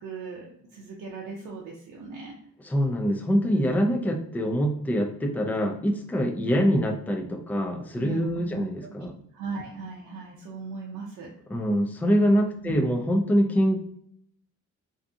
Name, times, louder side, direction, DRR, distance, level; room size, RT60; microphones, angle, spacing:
voice 1, 0.0-2.3 3.5-3.8 6.4-6.5 8.0-11.3 12.5-12.8, right 4 dB, 85° right, -2 dB, 0.6 m, -39 dB
voice 2, 2.6-9.1 11.5-13.8, equal, 5° left, 3 dB, 0.3 m, -24 dB
2.7 x 2.3 x 2.5 m, 0.67 s
cardioid pair, 90°, 30 cm